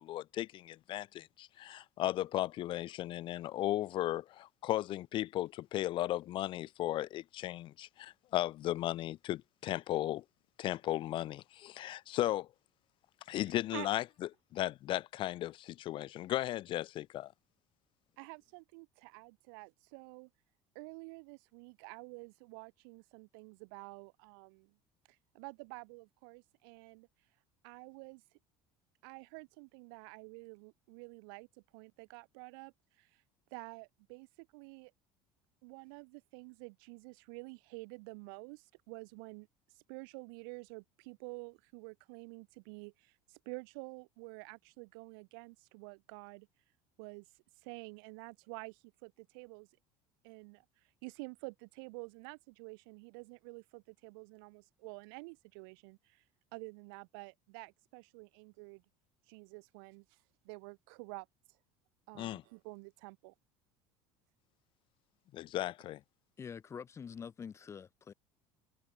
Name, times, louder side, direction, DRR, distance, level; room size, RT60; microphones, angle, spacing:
voice 1, 0.0-10.2 10.6-12.5 13.3-14.0 14.5-17.3 62.1-62.4 65.3-66.0, left 14 dB, 45° left, 1.3 m, -36 dB
voice 2, 18.2-20.3 20.7-24.7 25.1-27.1 27.6-28.2 29.0-31.5 31.7-33.2 33.5-34.9 35.6-39.5 39.7-46.5 47.0-47.3 47.6-49.7 50.2-50.6 51.0-56.2 56.5-58.8 59.3-60.2 60.4-61.3 62.1-63.3, right 32 dB, 85° right, 2.6 m, -49 dB
voice 3, 66.4-68.1, left 6 dB, 25° left, 2.0 m, -46 dB
cardioid pair, 145°, 12 cm